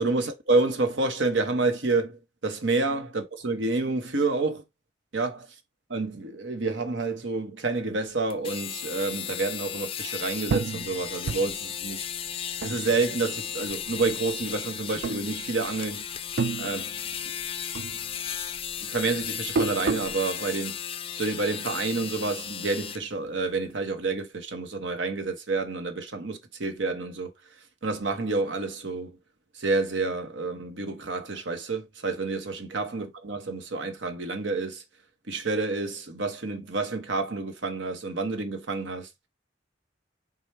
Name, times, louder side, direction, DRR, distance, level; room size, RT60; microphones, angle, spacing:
voice 1, 0.0-4.6 5.1-5.5 5.9-12.1 12.6-16.0 16.6-17.0 18.8-20.8 21.1-27.3 27.8-29.2 29.5-34.8 35.3-39.1, right 3 dB, 85° right, 1.0 m, -29 dB
sound 1, 8.3-23.0, left 9 dB, 30° left, 0.3 m, -35 dB
sound 2, 10.5-13.4 13.7-14.5 15.0-15.9 16.1-17.5 17.7-20.2, right 4 dB, 60° right, 0.4 m, -31 dB
4.9 x 2.3 x 4.3 m
head